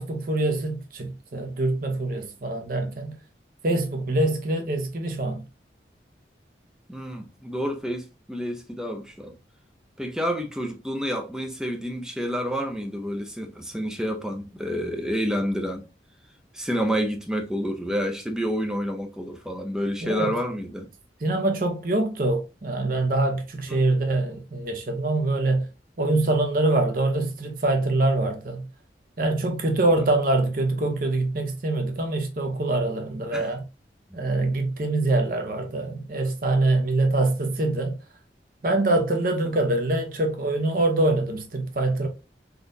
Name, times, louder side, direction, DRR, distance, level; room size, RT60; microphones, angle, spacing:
voice 1, 0.0-3.2 3.6-5.5 20.0-20.3 21.2-25.7 26.0-28.7 29.2-33.6 34.1-38.0 38.6-42.1, right 2 dB, 50° right, 0.7 m, -24 dB
voice 2, 6.9-9.4 10.0-15.9 16.5-20.9 23.7-23.8 30.0-30.1 33.3-33.5 34.1-34.2, equal, 5° right, 0.5 m, -29 dB
3.6 x 2.4 x 2.5 m
head